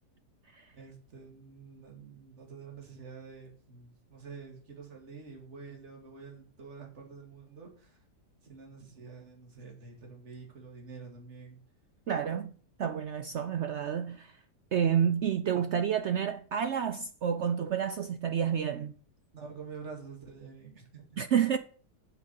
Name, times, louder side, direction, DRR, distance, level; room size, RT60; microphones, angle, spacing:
voice 1, 0.7-8.0 8.4-11.6 19.3-21.2, right 5 dB, 45° right, 2.6 m, -48 dB
voice 2, 12.1-12.5 12.8-14.3 14.7-18.9 21.2-21.6, right 8 dB, 75° right, 0.6 m, -29 dB
7.8 x 6.0 x 6.9 m
omnidirectional pair, 1.8 m